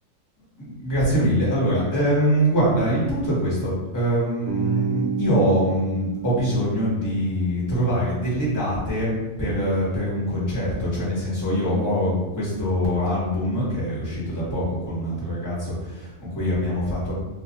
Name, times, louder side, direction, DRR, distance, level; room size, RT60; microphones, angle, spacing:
voice 1, 0.6-17.1, equal, 15° left, -8 dB, 1.0 m, -23 dB
Bass guitar, 4.5-8.4, right 6 dB, 65° right, 0.7 m, -31 dB
2.5 x 2.4 x 4.0 m, 1.1 s
omnidirectional pair, 1.5 m